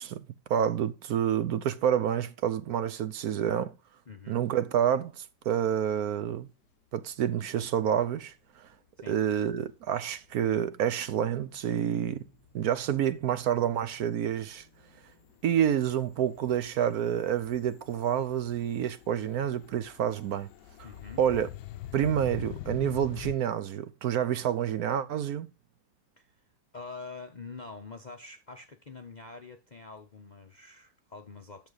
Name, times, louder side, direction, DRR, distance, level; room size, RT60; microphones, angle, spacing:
voice 1, 0.0-3.8 4.3-6.5 6.9-8.7 9.1-12.2 12.5-14.7 15.4-20.5 21.2-21.5 21.9-25.5, right 9 dB, 70° right, 1.1 m, -28 dB
voice 2, 4.1-4.4 9.0-9.2 20.8-21.2 26.2-26.4 26.7-31.7, left 4 dB, 40° left, 0.6 m, -45 dB
sound 1, 9.4-10.7 11.1-11.6 11.9-23.4, left 13 dB, 90° left, 1.3 m, -46 dB
10.5 x 6.8 x 4.0 m
omnidirectional pair, 1.8 m